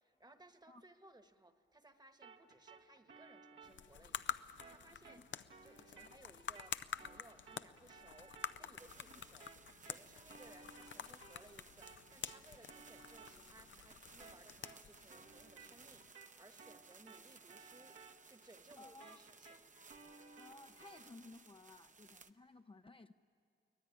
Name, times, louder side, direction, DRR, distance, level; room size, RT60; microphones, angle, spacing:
voice 1, 0.0-5.2 5.6-9.5 9.8-18.0 18.2-19.6, right 2 dB, 20° right, 8 dB, 1.3 m, -63 dB
sound 1, 2.2-11.6 11.8-21.1, right 4 dB, 85° right, 1.8 m, -60 dB
sound 2, 3.6-16.1, left 8 dB, 80° left, 0.6 m, -49 dB
sound 3, 8.8-22.3, right 4 dB, 40° right, 0.8 m, -61 dB
voice 2, 18.8-19.2 20.4-23.1, left 2 dB, 25° left, 6 dB, 0.6 m, -57 dB
23.5 x 18.5 x 9.7 m, 2.7 s
wide cardioid pair, 85°, 19 cm